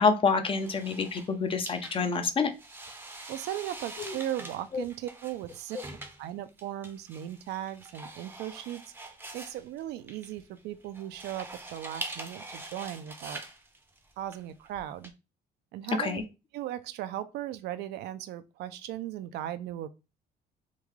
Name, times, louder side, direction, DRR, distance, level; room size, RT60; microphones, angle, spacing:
voice 1, 0.0-2.5 4.0-4.1 4.7-4.8 5.7-5.8 16.0-16.2, left 5 dB, 30° left, 0.6 m, -27 dB
sound 1, 0.6-15.1, right 2 dB, 10° right, 0.6 m, -44 dB
voice 2, 3.3-5.8 6.2-8.8 9.3-13.4 14.2-15.1 15.7-16.2 16.5-19.9, right 12 dB, 80° right, 0.4 m, -37 dB
3.6 x 2.2 x 3.1 m
cardioid pair, 110°, 17 cm